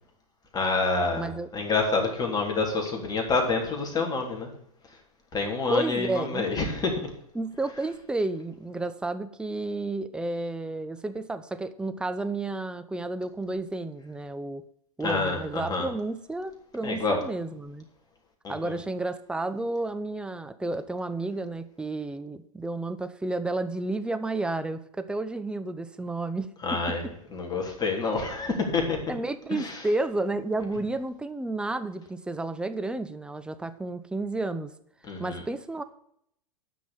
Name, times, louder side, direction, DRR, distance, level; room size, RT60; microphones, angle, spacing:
voice 1, 0.5-4.5 5.3-7.1 15.0-15.9 16.8-17.2 18.4-18.8 26.6-27.0 27.3-29.0 29.5-29.8 35.1-35.4, left 3 dB, 20° left, 1 dB, 3.5 m, -27 dB
voice 2, 1.2-1.5 5.7-6.5 7.3-14.6 15.0-17.8 18.5-26.9 29.1-34.7 35.2-35.8, right 2 dB, 5° right, 10 dB, 0.8 m, -31 dB
9.7 x 6.2 x 8.6 m, 0.70 s
hypercardioid pair, 110°, 18 cm